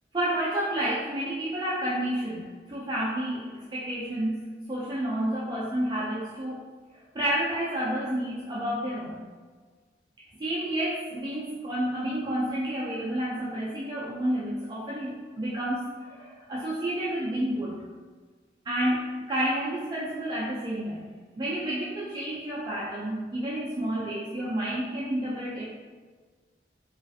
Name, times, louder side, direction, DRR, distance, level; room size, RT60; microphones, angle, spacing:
voice 1, 0.1-4.4 4.7-6.6 6.9-9.2 10.4-17.8 18.6-25.6, right 1 dB, 25° right, -7 dB, 0.3 m, -30 dB
3.1 x 2.4 x 2.6 m, 1.5 s
head